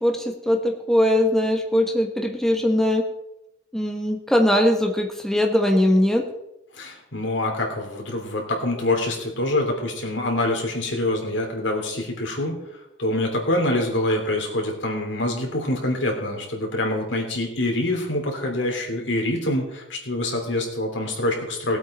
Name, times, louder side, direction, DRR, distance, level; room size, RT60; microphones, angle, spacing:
voice 1, 0.0-3.0 3.7-6.2, left 1 dB, ahead, 2 dB, 1.2 m, -20 dB
voice 2, 6.7-12.5 13.0-21.8, left 1 dB, 80° left, 1 dB, 3.1 m, -25 dB
18.5 x 8.2 x 4.3 m, 0.89 s
head